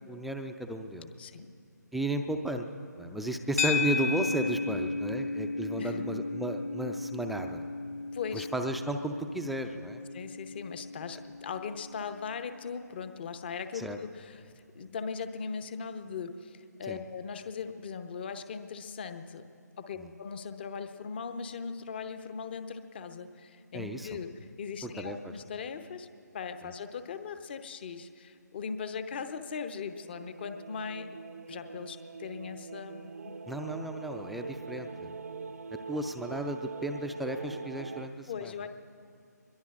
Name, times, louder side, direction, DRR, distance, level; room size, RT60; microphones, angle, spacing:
voice 1, 0.1-1.1 1.9-2.7 3.0-7.6 8.3-10.0 13.7-14.0 16.9-17.0 20.0-20.1 23.7-24.2 24.8-25.3 26.6-26.7 33.5-35.1 35.9-38.5, right 1 dB, ahead, 4 dB, 0.4 m, -34 dB
voice 2, 1.2-1.5 5.8-6.4 8.1-8.5 10.1-19.5 19.8-31.2 31.5-33.3 38.3-38.7, left 6 dB, 35° left, 10 dB, 0.8 m, -39 dB
sound 1, 3.6-12.0, left 3 dB, 50° left, 1.1 m, -35 dB
sound 2, 29.7-38.1, right 5 dB, 60° right, 0.5 m, -43 dB
24.0 x 22.0 x 2.5 m, 2.4 s
figure-of-eight pair, 145°, 10 cm